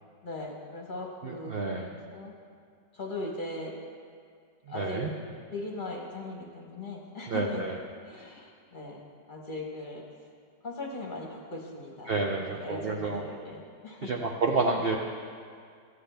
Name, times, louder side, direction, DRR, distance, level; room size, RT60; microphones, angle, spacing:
voice 1, 0.2-2.3 2.9-3.7 4.7-5.0 5.5-7.7 8.0-10.0 10.6-14.1, left 2 dB, 35° left, -1 dB, 1.0 m, -39 dB
voice 2, 1.2-1.9 4.7-5.1 7.3-7.8 12.1-13.3 14.0-15.0, right 3 dB, 65° right, 1 dB, 0.5 m, -29 dB
14.5 x 9.4 x 3.4 m, 2.1 s
omnidirectional pair, 1.8 m